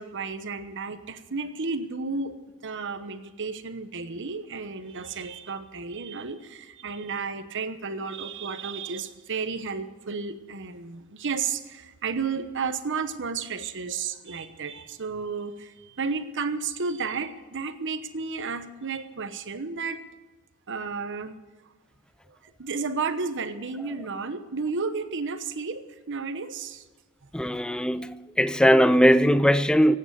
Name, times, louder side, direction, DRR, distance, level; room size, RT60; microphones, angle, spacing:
voice 1, 0.0-2.3 2.6-20.0 20.7-21.4 22.3-26.8, right 4 dB, 60° right, 1.0 m, -32 dB
voice 2, 27.3-30.0, equal, 5° left, 0.4 m, -20 dB
16.5 x 9.0 x 8.1 m
head